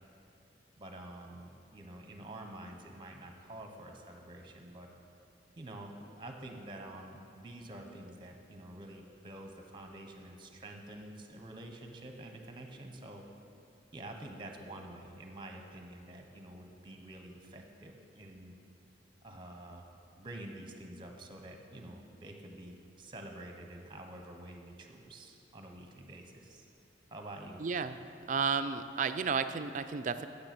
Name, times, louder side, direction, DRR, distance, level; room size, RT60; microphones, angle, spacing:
voice 1, 0.8-4.9 5.6-13.2 13.9-18.6 19.2-19.9 20.2-26.6 27.1-27.6, right 1 dB, 25° right, 4 dB, 0.9 m, -48 dB
voice 2, 27.6-28.0 28.3-30.3, right 5 dB, 45° right, 11 dB, 0.4 m, -32 dB
9.7 x 6.8 x 6.0 m, 2.5 s
head